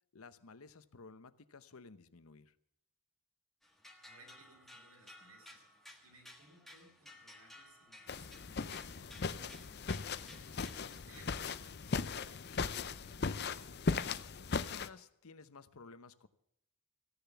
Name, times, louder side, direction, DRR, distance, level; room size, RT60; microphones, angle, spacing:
voice 1, 0.1-2.6 14.4-16.3, left 4 dB, 80° left, 13 dB, 0.9 m, -55 dB
sound 1, 3.6-11.0, left 1 dB, ahead, 1.4 m, -57 dB
voice 2, 4.0-5.6 6.0-10.6 11.1-13.3, right 2 dB, 85° right, 2 dB, 5.2 m, -63 dB
sound 2, 8.1-14.9, left 4 dB, 45° left, 0.6 m, -38 dB
15.5 x 10.5 x 7.0 m, 0.79 s
head